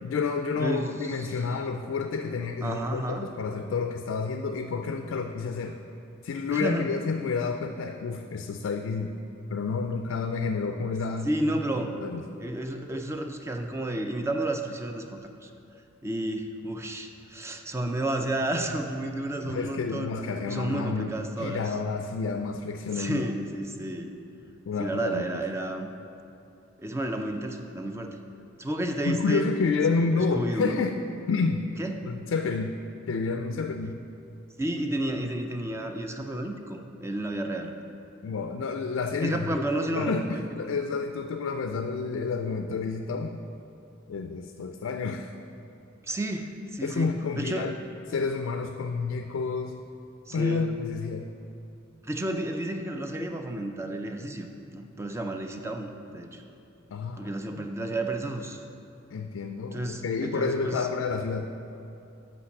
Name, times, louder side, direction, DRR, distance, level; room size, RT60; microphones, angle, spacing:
voice 1, 0.0-5.8 6.2-9.1 9.5-11.3 11.9-12.2 19.4-23.3 24.7-25.3 29.0-31.7 32.0-32.8 33.1-34.0 38.2-43.4 44.1-45.4 46.8-47.8 48.1-49.8 50.3-51.3 56.9-57.7 59.1-61.5, left 4 dB, 90° left, 6 dB, 0.3 m, -30 dB
voice 2, 0.6-1.3 2.6-3.3 5.1-5.2 6.5-6.9 11.2-12.0 12.4-15.5 16.0-20.1 20.5-21.7 22.9-24.2 24.8-25.9 26.8-28.2 28.6-29.5 30.0-30.8 31.8-32.1 34.6-37.7 39.2-40.4 46.0-47.7 50.3-50.7 52.0-56.4 57.2-58.6 59.7-60.9, right 1 dB, 15° right, 5 dB, 0.4 m, -31 dB
5.8 x 5.2 x 6.5 m, 2.7 s
head